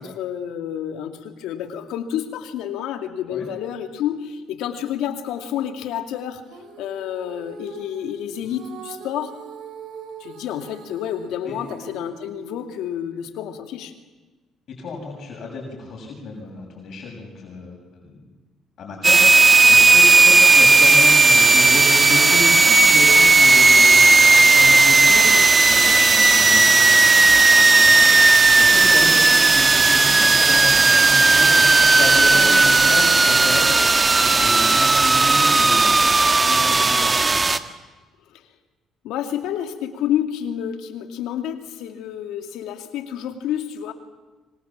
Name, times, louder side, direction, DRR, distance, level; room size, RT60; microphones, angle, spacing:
voice 1, 0.0-6.4 6.8-9.3 10.2-13.9 39.0-43.9, left 10 dB, 85° left, 6 dB, 2.5 m, -29 dB
Female singing, 6.5-13.0, right 5 dB, 80° right, 4.1 m, -42 dB
voice 2, 14.7-18.2 18.8-25.3 25.6-35.9 36.4-37.2, left 3 dB, 60° left, 0 dB, 7.3 m, -32 dB
sound 1, 19.0-37.6, right 3 dB, 25° right, 1.6 m, -14 dB
26.0 x 25.5 x 7.5 m, 1.2 s
supercardioid pair, 80°, 0 cm